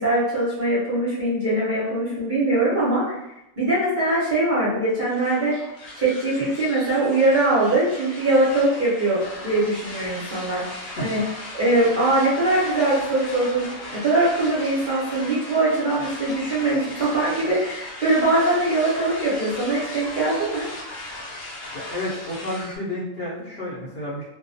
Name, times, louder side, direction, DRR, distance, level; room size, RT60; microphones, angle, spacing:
voice 1, 0.0-3.2 3.6-5.6 6.0-11.2 11.6-13.7 13.9-20.7, right 2 dB, 45° right, -8 dB, 0.7 m, -22 dB
sound 1, 5.1-22.8, left 2 dB, 80° left, 1.1 m, -37 dB
voice 2, 21.7-24.2, left 1 dB, 55° left, -6 dB, 0.8 m, -30 dB
2.2 x 2.2 x 2.5 m, 0.85 s
omnidirectional pair, 1.4 m